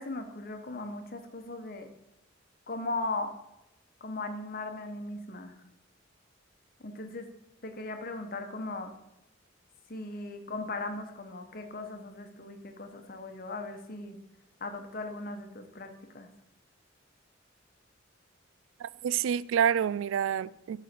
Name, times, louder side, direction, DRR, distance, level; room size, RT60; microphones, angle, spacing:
voice 1, 0.0-1.9 2.7-3.4 4.0-5.6 6.8-7.3 7.6-8.9 9.9-14.2 14.6-16.3, left 2 dB, 50° left, 1.1 m, -38 dB
voice 2, 18.8-20.8, right 8 dB, 85° right, 0.3 m, -28 dB
10.5 x 4.2 x 6.7 m
head